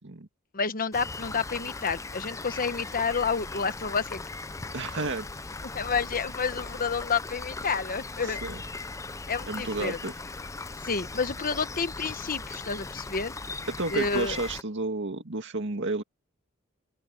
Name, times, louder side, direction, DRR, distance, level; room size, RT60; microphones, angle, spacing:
voice 1, 0.5-4.2 5.7-8.4 9.3-10.0 10.8-13.3 13.9-14.4, left 5 dB, 40° left, 1.1 m, -29 dB
Rain, 0.9-14.6, left 3 dB, 15° left, 0.5 m, -38 dB
voice 2, 4.7-5.3 8.2-8.6 9.5-10.1 13.7-16.0, right 2 dB, 60° right, 2.1 m, -31 dB
open air
head